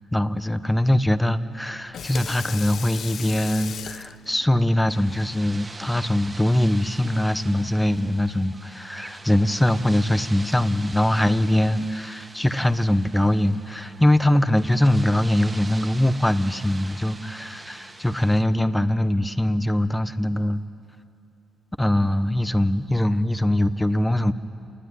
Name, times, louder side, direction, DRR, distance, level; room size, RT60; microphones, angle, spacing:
voice 1, 0.1-20.6 21.8-24.3, left 1 dB, 5° left, 13 dB, 0.9 m, -22 dB
Water tap faucet / Sink (filling or washing), 1.7-7.2, left 8 dB, 60° left, 0.7 m, -39 dB
sound 1, 4.9-18.4, right 2 dB, 20° right, 1.7 m, -43 dB
28.0 x 20.0 x 9.6 m, 2.7 s
cardioid pair, 115°, 0 cm